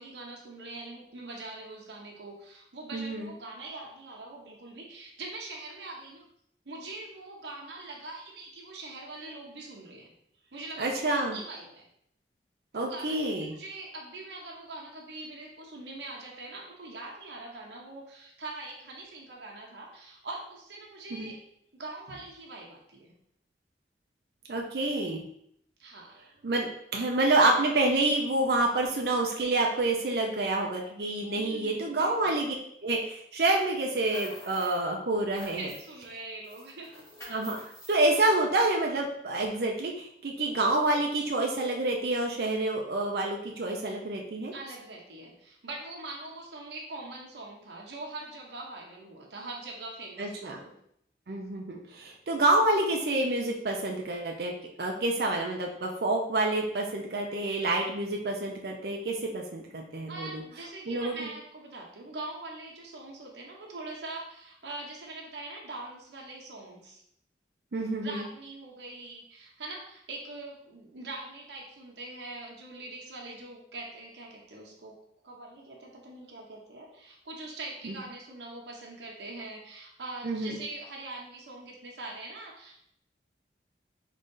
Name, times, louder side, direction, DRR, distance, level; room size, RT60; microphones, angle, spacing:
voice 1, 0.0-6.3 6.6-10.1 10.4-11.9 12.7-13.2 13.5-21.4 21.7-23.1 25.8-26.1 31.3-32.3 35.6-37.0 44.5-50.7 60.1-67.0 68.0-75.0 75.2-82.7, right 2 dB, 85° right, -1 dB, 0.9 m, -43 dB
voice 2, 2.9-3.3 10.8-11.4 12.7-13.5 21.1-21.3 24.5-25.2 26.4-26.7 26.9-32.5 32.8-35.7 37.3-37.6 37.9-44.5 50.2-50.5 51.3-54.5 54.8-60.4 60.9-61.3 67.7-68.2 77.8-77.9 80.2-80.6, right 2 dB, 60° right, 0 dB, 0.5 m, -28 dB
sound 1, 33.8-34.8 35.1-36.1 36.4-38.0, equal, 15° left, 1.5 m, -47 dB
3.8 x 3.2 x 3.8 m, 0.72 s
head